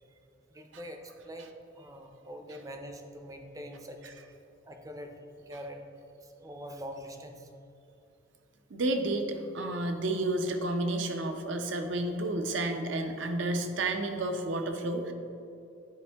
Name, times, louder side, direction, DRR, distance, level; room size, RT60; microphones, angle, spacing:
voice 1, 0.5-4.0 4.6-5.9 6.2-7.5, equal, 20° right, 5 dB, 0.5 m, -44 dB
voice 2, 8.7-15.1, right 2 dB, 70° right, 5 dB, 0.6 m, -31 dB
9.7 x 4.3 x 3.4 m, 2.7 s
head